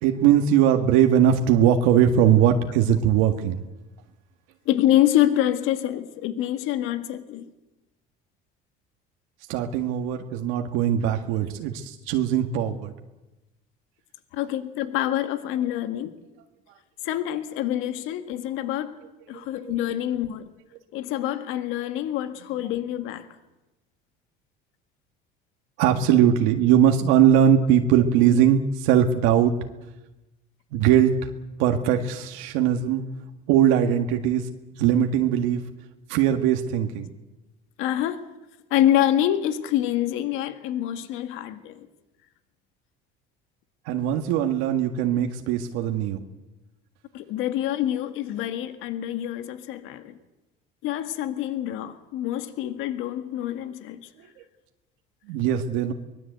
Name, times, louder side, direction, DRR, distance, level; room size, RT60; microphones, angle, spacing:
voice 1, 0.0-3.6 9.5-12.9 19.6-19.8 25.8-29.5 30.7-31.3 31.6-33.0 33.5-34.5 34.8-35.6 36.1-37.1 43.9-46.2 55.3-55.9, right 9 dB, 85° right, 1.8 m, -20 dB
voice 2, 4.7-7.5 14.3-16.1 17.0-19.0 19.3-20.5 20.9-23.3 37.8-38.2 38.7-41.8 47.1-50.2 50.8-54.1, left 12 dB, 75° left, 1.7 m, -26 dB
23.5 x 20.5 x 8.2 m
cardioid pair, 115°, 21 cm